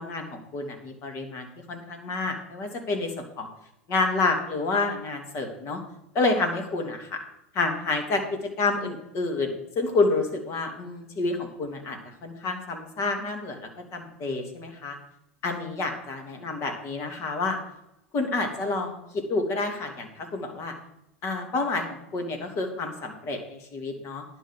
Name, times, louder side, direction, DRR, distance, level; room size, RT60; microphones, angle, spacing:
voice 1, 0.0-3.5 3.9-5.8 6.1-7.2 7.5-15.0 15.4-17.6 18.1-20.7 21.2-24.2, left 3 dB, 45° left, 4 dB, 2.5 m, -29 dB
10.5 x 5.6 x 7.5 m, 0.84 s
hypercardioid pair, 85°, 7 cm